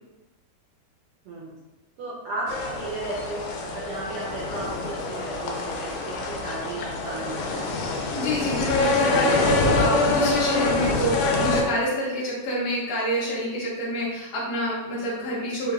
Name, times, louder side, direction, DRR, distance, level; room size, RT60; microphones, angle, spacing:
voice 1, 1.2-1.6 2.0-7.7, right 2 dB, 85° right, -6 dB, 1.2 m, -34 dB
sound 1, 2.5-11.6, left 3 dB, 85° left, 2.1 m, -25 dB
voice 2, 8.1-15.7, equal, 55° left, -7 dB, 0.9 m, -27 dB
5.1 x 2.4 x 3.3 m, 1.1 s
omnidirectional pair, 3.6 m